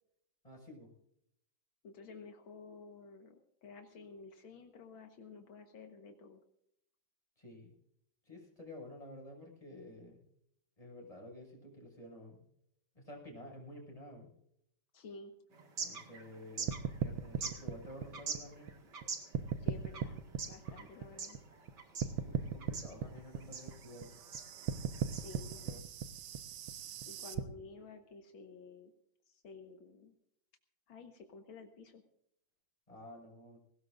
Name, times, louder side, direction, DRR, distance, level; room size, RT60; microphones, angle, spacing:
voice 1, 0.4-0.9 7.4-7.7 8.2-10.2 10.8-12.4 12.9-14.3 15.8-18.7 22.1-24.1 24.8-25.8 32.9-33.6, left 1 dB, 15° left, -1 dB, 6.3 m, -51 dB
voice 2, 1.8-6.4 14.9-15.3 19.6-21.4 25.1-25.6 27.1-28.9 29.3-30.2 30.9-32.0, left 4 dB, 80° left, 5 dB, 2.2 m, -52 dB
sound 1, 15.5-25.8, right 5 dB, 60° right, 2.6 m, -46 dB
sound 2, 16.7-19.0 19.3-21.7 22.0-27.4, right 8 dB, 90° right, 1.7 m, -38 dB
20.5 x 18.5 x 2.6 m, 0.74 s
omnidirectional pair, 2.1 m